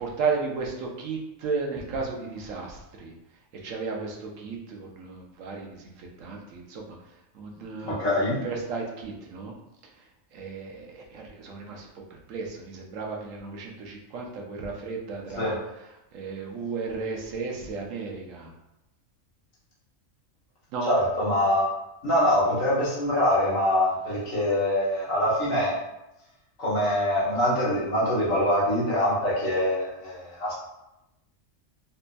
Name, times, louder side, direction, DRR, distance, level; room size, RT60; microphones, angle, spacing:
voice 1, 0.0-3.1 3.6-7.0 7.3-8.0 8.4-9.5 10.0-10.1 10.3-15.6 16.1-18.5 20.7-20.9, right 4 dB, 75° right, 0 dB, 1.0 m, -34 dB
voice 2, 7.8-8.4 15.4-15.5 20.9-21.7 22.0-25.8 26.6-30.5, left 1 dB, 75° left, -6 dB, 1.5 m, -24 dB
4.1 x 2.5 x 2.2 m, 0.91 s
omnidirectional pair, 1.4 m